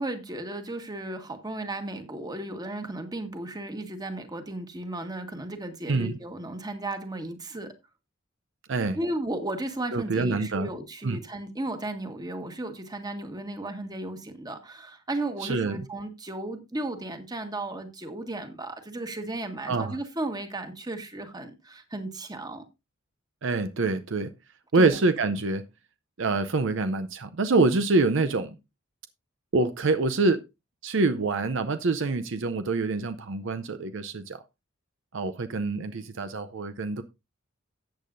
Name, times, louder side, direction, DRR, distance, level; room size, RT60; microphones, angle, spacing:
voice 1, 0.0-7.7 8.9-22.6 24.7-25.0, right 2 dB, 20° right, 1.6 m, -35 dB
voice 2, 9.9-10.7 11.0-11.2 15.4-15.8 19.7-20.0 23.4-24.3 24.7-25.6 26.2-28.6 29.5-30.4 30.8-34.4 35.1-37.0, right 3 dB, 65° right, 0.6 m, -25 dB
14.0 x 8.5 x 2.6 m
head